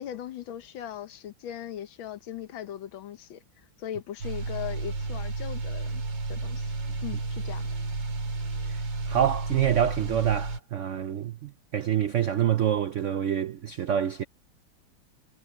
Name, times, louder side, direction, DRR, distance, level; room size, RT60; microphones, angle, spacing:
voice 1, 0.0-3.4 3.8-6.0 6.3-6.7 7.0-7.7, left 11 dB, 90° left, 1.8 m, -39 dB
sound 1, 4.2-10.6, right 3 dB, 65° right, 3.1 m, -32 dB
voice 2, 9.1-14.2, right 9 dB, 85° right, 0.6 m, -26 dB
omnidirectional pair, 2.1 m